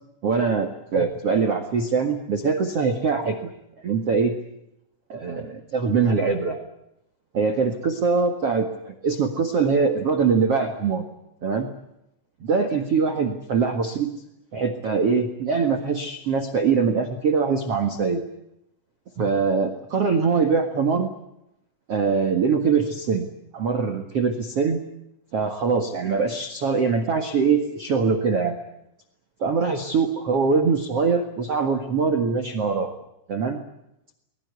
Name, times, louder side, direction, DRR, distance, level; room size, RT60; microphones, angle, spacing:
voice 1, 0.2-3.5 3.8-4.3 5.1-6.6 7.3-11.1 11.4-11.7 12.4-14.1 14.5-18.2 19.2-21.1 21.9-23.3 23.5-24.8 25.3-28.6 29.4-32.9 33.3-33.6, right 5 dB, 80° right, 5 dB, 1.3 m, -23 dB
24.0 x 21.0 x 8.2 m, 0.83 s
omnidirectional pair, 5.9 m